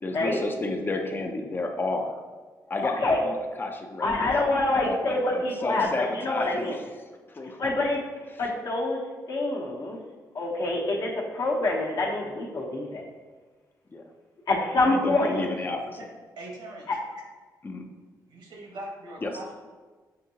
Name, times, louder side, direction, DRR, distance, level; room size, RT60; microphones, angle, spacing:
voice 1, 0.0-2.2 2.7-4.3 4.8-6.8 7.3-7.6 10.9-11.1 13.9-14.0 14.9-16.1 17.6-17.9 19.2-19.3, left 2 dB, 30° left, 4 dB, 0.5 m, -32 dB
voice 2, 2.8-3.2 4.0-6.8 7.6-8.0 8.4-9.0 9.3-10.0 10.3-13.0 14.5-15.5 16.9-17.0, left 2 dB, 60° left, -2 dB, 0.9 m, -26 dB
voice 3, 16.4-16.9 18.3-19.5, right 1 dB, 85° right, -2 dB, 1.3 m, -41 dB
6.4 x 2.7 x 2.8 m, 1.4 s
cardioid pair, 115°, 7 cm